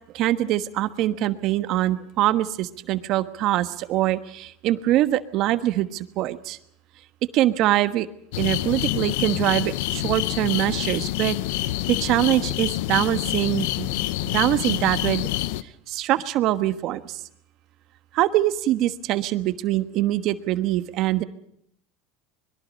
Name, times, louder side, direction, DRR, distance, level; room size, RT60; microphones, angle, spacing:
voice 1, 0.1-6.6 7.3-8.1 8.4-11.4 11.9-13.9 14.3-15.3 15.9-17.2 18.1-21.2, right 14 dB, 55° right, 11 dB, 1.2 m, -23 dB
sound 1, 8.3-15.6, left 15 dB, 75° left, 0.8 m, -27 dB
25.5 x 22.0 x 5.3 m, 0.69 s
supercardioid pair, 105°, 0 cm